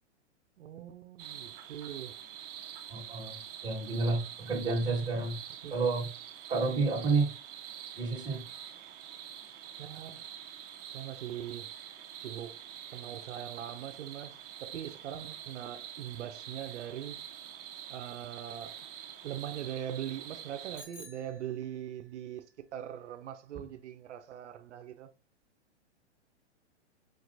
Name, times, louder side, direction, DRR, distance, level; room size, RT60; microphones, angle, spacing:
voice 1, 0.6-2.2 5.6-5.8 9.8-10.2 10.9-11.7 12.2-12.6 12.9-17.2 17.9-18.9 19.2-22.4 22.7-25.1, right 10 dB, 75° right, 0.6 m, -41 dB
sound 1, 1.2-20.8, right 10 dB, 35° right, 0.7 m, -46 dB
voice 2, 2.9-3.3 3.6-5.3 5.7-6.1 6.5-7.3 8.0-8.4, right 3 dB, 10° right, 1.3 m, -30 dB
Bicycle bell, 20.7-22.0, left 1 dB, 10° left, 1.0 m, -52 dB
5.1 x 2.9 x 2.6 m
hypercardioid pair, 135°, 36 cm